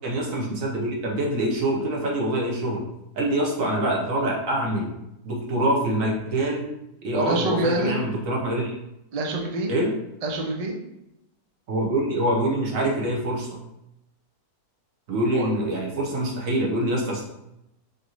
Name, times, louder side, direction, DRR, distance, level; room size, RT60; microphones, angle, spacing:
voice 1, 0.0-2.8 3.1-4.9 5.2-6.7 7.0-8.7 9.7-9.9 11.7-13.6 15.1-17.2, right 1 dB, 60° right, -2 dB, 1.3 m, -25 dB
voice 2, 7.1-8.0 9.1-9.7 10.2-10.8 15.3-15.5, right 2 dB, 80° right, 0 dB, 0.3 m, -26 dB
5.2 x 2.7 x 3.0 m, 0.86 s
omnidirectional pair, 1.7 m